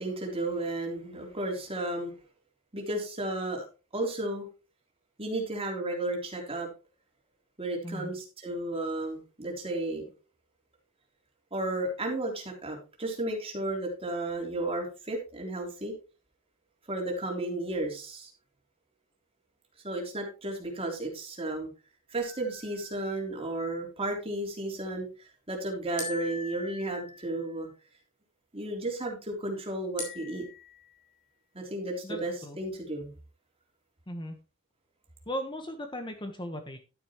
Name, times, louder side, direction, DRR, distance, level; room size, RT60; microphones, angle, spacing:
voice 1, 0.0-2.1 2.7-3.6 3.9-4.5 5.2-6.7 7.6-10.1 11.5-15.9 16.9-18.3 19.8-21.7 22.1-27.7 28.5-30.4 31.5-33.1, right 2 dB, 25° right, 1 dB, 3.5 m, -33 dB
sound 1, 22.2-23.6 26.0-27.6 30.0-31.1, left 3 dB, 40° left, 4.6 m, -43 dB
voice 2, 32.0-32.6 34.1-34.4 35.3-36.8, equal, 20° left, 6 dB, 1.2 m, -37 dB
12.0 x 9.7 x 3.1 m, 0.33 s
head